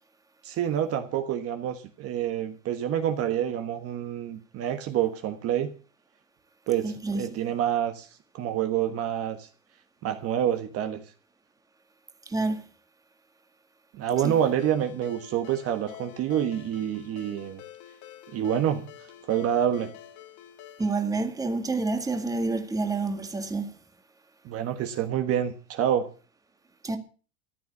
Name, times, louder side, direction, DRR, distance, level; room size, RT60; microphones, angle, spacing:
voice 1, 0.4-5.7 6.7-8.1 8.3-9.5 10.0-11.0 13.9-17.6 18.3-18.9 19.3-19.9 24.4-26.1, right 10 dB, 40° right, 1.4 m, -27 dB
voice 2, 6.8-7.4 12.3-12.6 14.2-14.4 20.8-23.8 26.8-27.0, right 3 dB, 10° right, 1.7 m, -28 dB
Ringtone, 14.2-21.0, left 12 dB, 50° left, 2.3 m, -47 dB
14.0 x 9.6 x 6.8 m
supercardioid pair, 125°, 37 cm